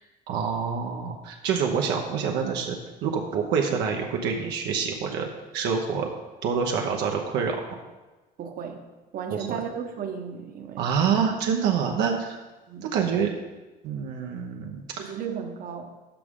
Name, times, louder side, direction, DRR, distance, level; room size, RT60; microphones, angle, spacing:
voice 1, 0.3-5.3 5.5-6.1 6.4-7.6 9.3-9.6 10.8-12.4 12.8-13.3 13.8-15.1, right 6 dB, 85° right, 2 dB, 0.9 m, -26 dB
voice 2, 8.4-8.8 9.1-10.8 12.7-12.9 15.0-15.9, right 7 dB, 60° right, 5 dB, 1.0 m, -34 dB
13.0 x 4.9 x 3.7 m, 1.2 s
cardioid pair, 110°, 17 cm